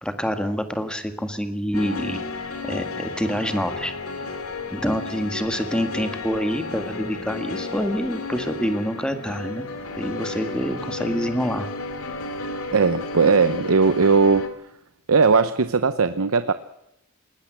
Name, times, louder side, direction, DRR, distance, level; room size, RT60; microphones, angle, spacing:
voice 1, 0.0-2.2 2.6-3.9 4.7-9.6 10.0-11.7, equal, 5° left, 8 dB, 1.7 m, -26 dB
sound 1, 1.7-14.5, left 3 dB, 90° left, 2.6 m, -33 dB
voice 2, 12.7-14.5 15.1-16.5, right 4 dB, 80° right, 12 dB, 0.8 m, -18 dB
20.0 x 19.5 x 7.8 m, 0.79 s
head